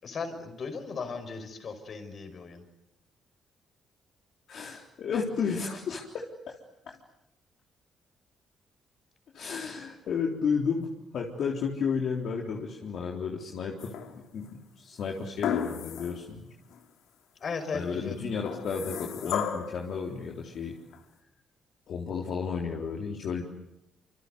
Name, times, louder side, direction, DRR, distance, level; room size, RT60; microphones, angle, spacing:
voice 1, 0.0-2.6 17.4-18.1, left 5 dB, 50° left, 9 dB, 5.8 m, -36 dB
voice 2, 4.5-6.6 6.9-7.0 9.3-10.9 11.1-16.5 17.7-20.7 21.9-23.4, left 6 dB, 65° left, 0 dB, 3.8 m, -32 dB
sound 1, 13.8-14.4 15.4-16.3 16.7-16.8 18.4-19.8 20.9-21.0, left 8 dB, 85° left, 2.6 m, -33 dB
27.5 x 26.0 x 8.2 m, 0.81 s
cardioid pair, 90°, 0 cm